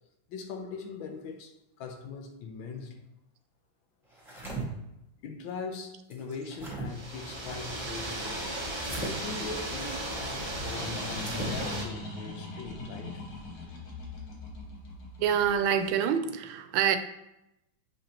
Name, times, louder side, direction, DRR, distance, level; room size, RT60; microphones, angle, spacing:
voice 1, 0.3-3.0 5.2-8.4 8.9-13.2, left 4 dB, 80° left, 1.5 m, -41 dB
sound 1, 4.1-4.6 6.1-6.9 8.8-9.1 11.1-11.6, right 3 dB, ahead, 1.5 m, -38 dB
sound 2, 6.9-11.8, right 1 dB, 30° right, 0.5 m, -35 dB
sound 3, 10.5-15.7, left 2 dB, 65° left, 1.8 m, -40 dB
voice 2, 15.2-17.0, right 8 dB, 85° right, 1.4 m, -26 dB
7.3 x 5.2 x 2.9 m
omnidirectional pair, 2.2 m